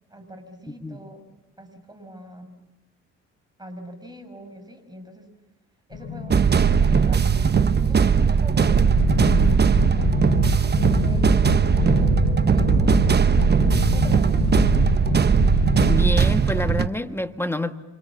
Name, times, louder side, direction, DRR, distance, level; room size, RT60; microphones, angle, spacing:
voice 1, 0.1-1.3 1.6-2.6 3.6-5.3 5.9-7.4 7.9-15.2, right 1 dB, 15° right, 6 dB, 6.4 m, -43 dB
sound 1, 5.9-15.5, left 4 dB, 35° left, 6.0 m, -35 dB
sound 2, 6.3-16.9, right 6 dB, 35° right, 1.1 m, -19 dB
sound 3, 9.0-16.0, left 11 dB, 55° left, 0.8 m, -26 dB
voice 2, 15.9-17.8, left 1 dB, 10° left, 8 dB, 1.5 m, -27 dB
27.5 x 26.5 x 7.3 m, 1.0 s
cardioid pair, 90°, 30 cm